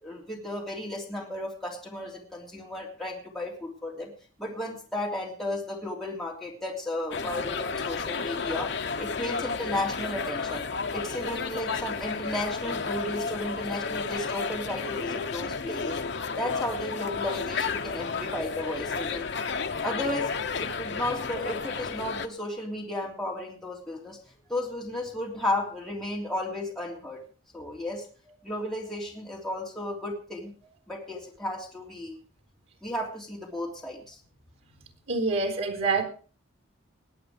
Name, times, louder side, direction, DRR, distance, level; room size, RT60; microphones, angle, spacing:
voice 1, 0.0-4.1 4.4-8.7 9.0-10.6 10.9-16.0 16.3-19.3 19.8-24.2 24.5-27.2 27.5-28.0 28.4-30.5 30.9-32.2 32.8-34.2, left 1 dB, ahead, 3.1 m, -34 dB
sound 1, 7.1-22.3, left 5 dB, 55° left, 0.8 m, -32 dB
voice 2, 35.1-36.0, right 3 dB, 80° right, 4.0 m, -26 dB
20.0 x 8.6 x 5.0 m
head